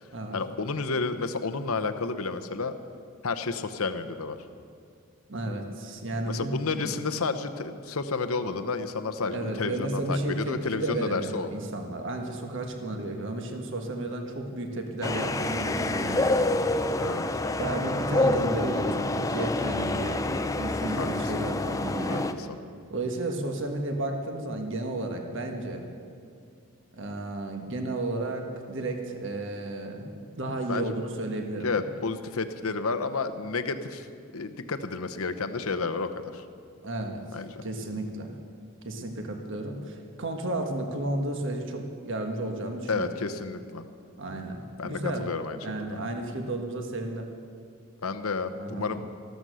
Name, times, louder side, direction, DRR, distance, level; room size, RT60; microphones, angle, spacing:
voice 1, 0.3-2.7 3.2-4.4 6.3-11.5 17.0-17.3 21.0-21.4 22.0-22.5 30.7-30.9 31.6-34.1 34.3-36.4 37.3-37.6 42.9-43.8 44.8-46.0 48.0-49.1, left 4 dB, 75° left, 9 dB, 0.9 m, -31 dB
voice 2, 5.3-6.9 9.3-16.6 17.6-20.3 20.6-22.3 22.9-25.9 26.9-30.1 30.4-31.8 36.8-37.2 37.6-38.3 38.8-43.1 44.2-45.3 45.6-47.3 48.5-48.9, right 2 dB, 55° right, 4 dB, 1.5 m, -33 dB
sound 1, 15.0-22.3, left 2 dB, 15° left, 0.5 m, -27 dB
14.5 x 13.5 x 6.4 m, 2.3 s
head